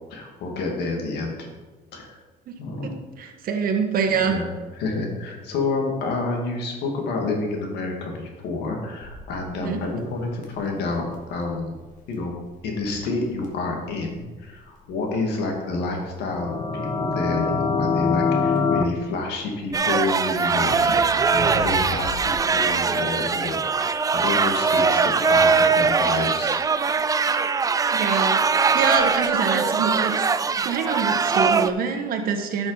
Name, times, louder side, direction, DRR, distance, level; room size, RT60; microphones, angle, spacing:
voice 1, 0.1-1.5 1.9-2.1 2.6-2.9 4.2-4.5 4.8-11.7 12.1-12.3 12.6-26.6, left 3 dB, 80° left, 1 dB, 2.2 m, -29 dB
voice 2, 3.2-4.4 9.5-9.8 27.9-30.3 30.6-32.7, right 6 dB, 60° right, 4 dB, 1.4 m, -25 dB
Crackle, 9.0-22.6, left 1 dB, 50° left, 2.0 m, -41 dB
sound 1, 16.3-18.8, left 5 dB, 25° left, 0.7 m, -23 dB
sound 2, 19.7-31.7, right 5 dB, 20° right, 0.4 m, -21 dB
11.0 x 6.2 x 4.0 m, 1.3 s
cardioid pair, 110°, 17 cm